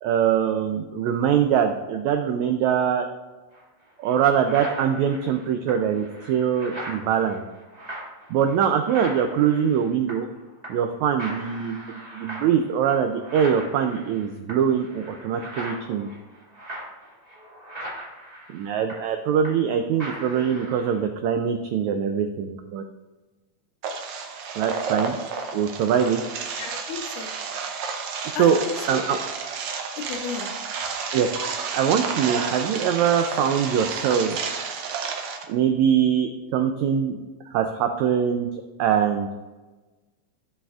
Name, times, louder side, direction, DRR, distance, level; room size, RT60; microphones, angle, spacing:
voice 1, 0.0-3.1 4.0-7.4 8.3-10.3 10.7-16.1 18.5-22.8 24.6-25.2 25.5-26.2 28.4-28.6 28.9-29.2 31.1-31.3 31.7-34.4 35.5-37.2 37.5-39.3, right 8 dB, 90° right, 6 dB, 1.6 m, -23 dB
sound 1, 3.5-3.6 4.0-10.4 10.6-10.9 11.2-19.7 20.0-21.0, right 1 dB, 25° right, 0.8 m, -39 dB
sound 2, 23.8-35.4, right 5 dB, 70° right, 1.9 m, -31 dB
voice 2, 26.6-27.3 28.4-29.2 30.1-30.5, left 7 dB, 75° left, 5 dB, 2.2 m, -33 dB
15.5 x 5.7 x 2.4 m, 1.2 s
omnidirectional pair, 3.9 m